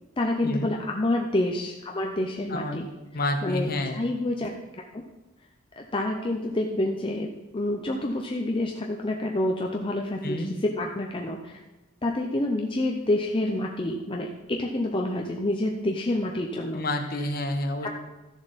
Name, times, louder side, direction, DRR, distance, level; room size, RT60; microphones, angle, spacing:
voice 1, 0.2-2.9 3.4-4.5 4.9-5.0 5.8-7.3 7.5-11.6 12.0-16.8 17.8-17.9, left 1 dB, 25° left, 1 dB, 0.6 m, -28 dB
voice 2, 2.5-2.9 3.1-4.0 10.2-10.5 16.7-17.9, left 1 dB, 45° left, 5 dB, 1.1 m, -29 dB
13.5 x 7.1 x 4.1 m, 1.1 s
head